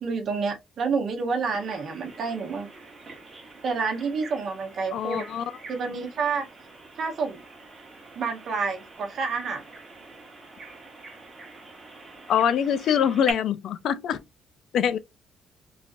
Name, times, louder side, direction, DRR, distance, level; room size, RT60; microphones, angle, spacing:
voice 1, 0.0-2.7 3.6-5.2 5.7-6.5 7.0-7.4 8.1-9.6, right 5 dB, 45° right, 0.8 m, -28 dB
Bird vocalization bird call bird song, 1.5-13.3, right 3 dB, 25° right, 1.0 m, -44 dB
voice 2, 4.9-5.5 12.3-14.2 14.7-15.0, left 8 dB, 60° left, 0.3 m, -24 dB
3.1 x 2.5 x 2.5 m
cardioid pair, 155°, 0 cm